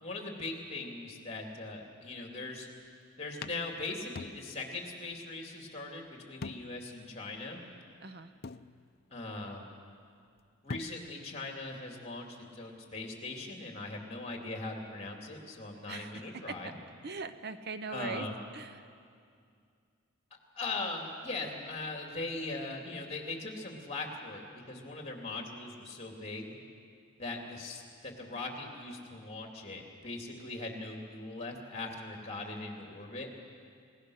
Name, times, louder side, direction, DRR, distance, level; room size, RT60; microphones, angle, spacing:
voice 1, 0.0-2.7 3.2-7.6 9.1-9.7 10.6-16.7 17.9-18.4 20.5-26.5 27.2-33.3, left 2 dB, 30° left, 1 dB, 2.9 m, -40 dB
sound 1, 2.9-3.0 3.4-4.8 5.1-5.2 6.4-6.9 7.4-7.5 8.4-9.2 10.4-10.5 10.7-11.3, left 4 dB, 50° left, 0.5 m, -44 dB
voice 2, 15.9-16.2 17.0-18.3 18.5-18.8, right 4 dB, 50° right, 11 dB, 0.8 m, -41 dB
30.0 x 17.5 x 6.5 m, 2.3 s
head